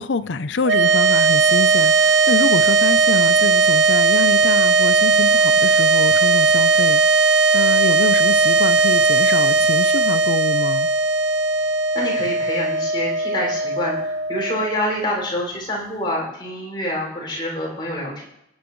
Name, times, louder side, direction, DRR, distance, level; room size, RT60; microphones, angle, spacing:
voice 1, 0.0-7.0 7.5-10.9, left 3 dB, 85° left, 0.7 m, -25 dB
sound 1, 0.6-15.1, right 4 dB, 75° right, 0.8 m, -17 dB
voice 2, 11.9-18.3, equal, 25° left, 6.3 m, -26 dB
24.0 x 9.2 x 3.2 m
head